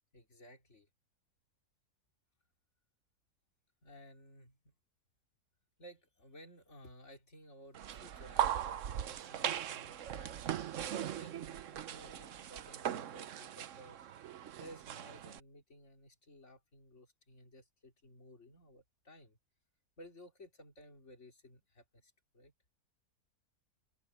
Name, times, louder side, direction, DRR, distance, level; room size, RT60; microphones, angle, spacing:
voice 1, 0.1-0.9 3.8-4.7 5.8-19.4 20.0-22.5, equal, 50° left, 3.6 m, -57 dB
sound 1, 7.8-15.4, right 10 dB, 60° right, 1.0 m, -39 dB
open air
omnidirectional pair, 1.6 m